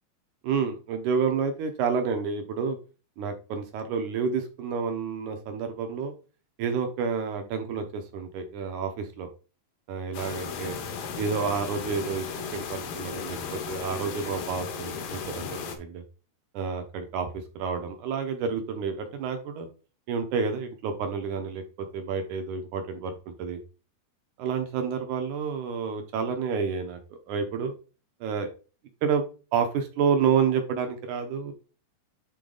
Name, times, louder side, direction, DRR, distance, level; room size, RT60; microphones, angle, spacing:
voice 1, 0.4-2.8 3.2-6.1 6.6-9.3 9.9-10.8 11.2-16.0 16.5-19.7 20.1-23.6 24.4-27.7 28.2-28.5 29.0-29.3 29.5-31.5, right 6 dB, 70° right, 6 dB, 2.0 m, -29 dB
sound 1, 10.1-15.8, left 6 dB, 70° left, 2.6 m, -36 dB
10.0 x 3.9 x 3.9 m, 0.35 s
omnidirectional pair, 4.3 m